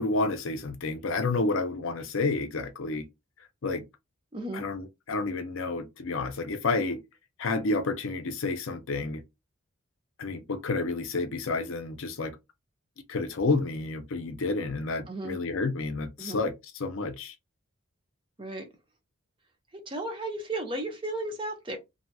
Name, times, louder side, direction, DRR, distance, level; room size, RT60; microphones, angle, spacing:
voice 1, 0.0-3.0 3.6-3.8 4.5-7.0 7.4-9.2 10.2-12.4 13.1-17.3, left 3 dB, 70° left, 0.5 m, -30 dB
voice 2, 4.3-4.6 15.1-15.4 16.2-16.4 18.4-18.7 19.9-21.8, right 2 dB, 25° right, 0.7 m, -34 dB
2.7 x 2.7 x 2.2 m
head